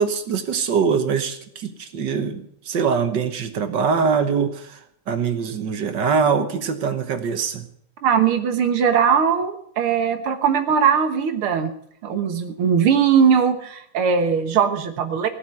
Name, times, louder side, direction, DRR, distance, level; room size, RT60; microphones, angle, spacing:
voice 1, 0.0-7.7, right 6 dB, 60° right, 8 dB, 1.7 m, -23 dB
voice 2, 8.0-11.7 12.0-15.3, right 7 dB, 85° right, 7 dB, 2.2 m, -19 dB
17.0 x 6.3 x 9.3 m, 0.68 s
omnidirectional pair, 2.3 m